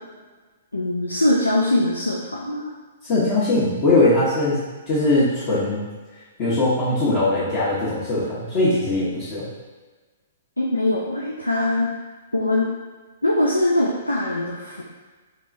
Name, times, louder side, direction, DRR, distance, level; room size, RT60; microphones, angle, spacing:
voice 1, 0.7-2.7 10.6-11.9 12.3-12.7 13.2-14.8, left 1 dB, 80° left, -4 dB, 0.5 m, -22 dB
voice 2, 3.0-5.8 6.4-9.5, left 2 dB, 35° left, -12 dB, 1.2 m, -20 dB
4.5 x 3.0 x 2.6 m, 1.3 s
figure-of-eight pair, 115°, 0 cm